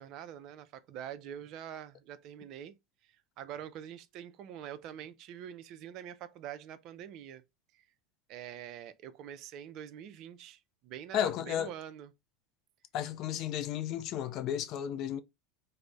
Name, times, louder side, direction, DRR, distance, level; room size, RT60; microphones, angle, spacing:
voice 1, 0.0-2.7 3.0-7.4 7.7-7.8 8.3-12.1, right 10 dB, 55° right, 0.4 m, -45 dB
voice 2, 11.1-11.7 12.9-15.2, left 10 dB, 50° left, 0.4 m, -33 dB
2.5 x 2.0 x 3.2 m
hypercardioid pair, 80°, 0 cm